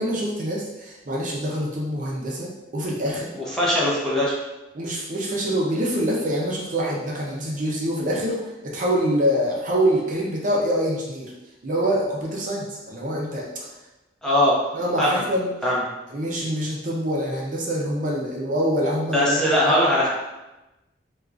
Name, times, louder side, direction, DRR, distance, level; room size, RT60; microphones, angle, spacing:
voice 1, 0.0-3.3 4.7-11.3 11.6-13.4 14.7-15.5 16.1-19.6, equal, 45° right, -3 dB, 0.5 m, -25 dB
voice 2, 3.4-4.3 14.2-14.6 15.0-15.2 15.6-15.8 19.1-20.1, left 1 dB, 5° left, -7 dB, 0.7 m, -20 dB
4.4 x 2.3 x 2.4 m, 1.0 s
head